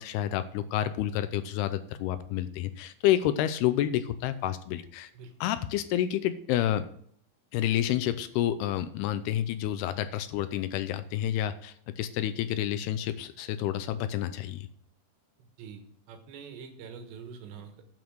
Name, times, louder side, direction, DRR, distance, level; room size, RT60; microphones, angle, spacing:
voice 1, 0.0-5.1 5.4-6.9 7.5-14.7, left 12 dB, 80° left, 12 dB, 2.3 m, -29 dB
voice 2, 15.4-15.8 16.1-17.8, right 6 dB, 80° right, 6 dB, 3.5 m, -45 dB
9.3 x 7.1 x 6.3 m, 0.64 s
omnidirectional pair, 5.1 m